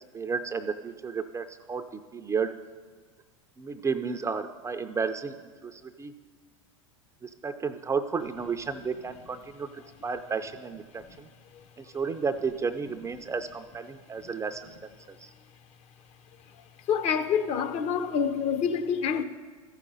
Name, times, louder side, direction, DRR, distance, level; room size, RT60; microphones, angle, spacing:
voice 1, 0.1-2.5 3.6-5.4 5.6-6.1 7.2-11.3 11.8-14.7 15.1-15.3, right 5 dB, 15° right, 0.4 m, -32 dB
voice 2, 16.9-19.2, left 7 dB, 40° left, 0.7 m, -27 dB
14.0 x 5.0 x 5.4 m
hypercardioid pair, 90°, 17 cm